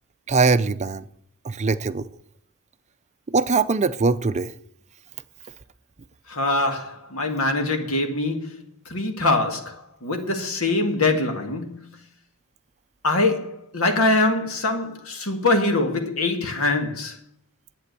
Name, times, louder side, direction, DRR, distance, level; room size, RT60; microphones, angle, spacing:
voice 1, 0.3-1.0 1.4-2.1 3.3-4.5, right 4 dB, 30° right, 0.5 m, -21 dB
voice 2, 6.3-9.8 10.0-11.8 13.0-17.2, left 2 dB, 75° left, 2.1 m, -23 dB
11.0 x 8.6 x 6.8 m
head